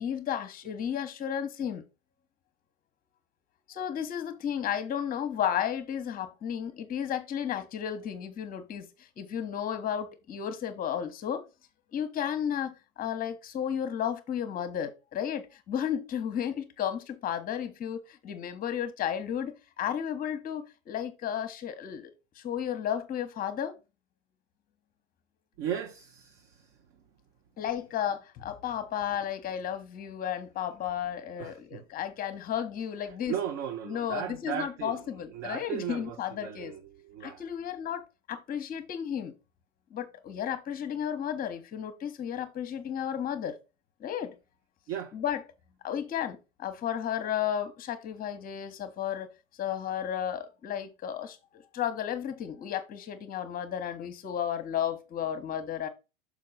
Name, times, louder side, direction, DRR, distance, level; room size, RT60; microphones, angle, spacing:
voice 1, 0.0-1.8 3.7-11.4 11.9-22.1 22.4-23.7 27.6-33.4 33.8-36.7 37.2-38.0 38.3-39.3 39.9-43.6 44.0-44.3 45.1-45.4 45.8-49.3 49.6-55.9, left 9 dB, 25° left, 1.1 m, -33 dB
voice 2, 25.6-26.7 31.4-31.8 33.3-35.0 35.3-37.4 44.9-45.1, right 9 dB, 35° right, 0.8 m, -36 dB
6.5 x 4.8 x 4.0 m
figure-of-eight pair, 95°, 38 cm